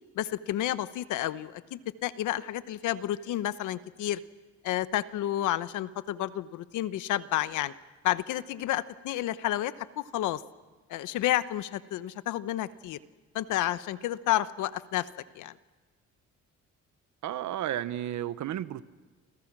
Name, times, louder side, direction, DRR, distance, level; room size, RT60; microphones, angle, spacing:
voice 1, 0.1-4.2 4.6-7.7 8.0-10.4 10.9-13.0 13.3-15.1 15.3-15.5, left 13 dB, 90° left, 14 dB, 1.0 m, -30 dB
voice 2, 17.2-18.8, right 12 dB, 70° right, 15 dB, 1.1 m, -32 dB
29.0 x 26.0 x 6.1 m, 1.3 s
cardioid pair, 90°, 30 cm